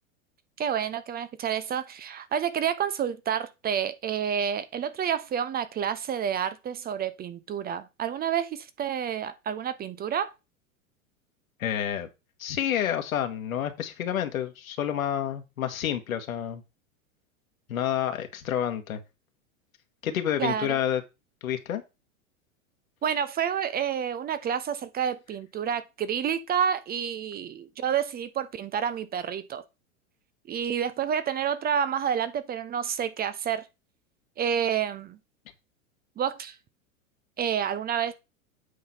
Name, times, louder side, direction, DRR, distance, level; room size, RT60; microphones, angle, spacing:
voice 1, 0.6-10.3 20.4-20.8 23.0-29.6 30.5-33.7 34.4-35.2 36.2-36.6 37.4-38.1, right 8 dB, 20° right, 0.6 m, -29 dB
voice 2, 11.6-12.1 12.4-16.6 17.7-19.0 20.0-21.0 21.4-21.8, left 10 dB, 75° left, 1.7 m, -29 dB
8.5 x 4.0 x 5.6 m
hypercardioid pair, 100°, 42 cm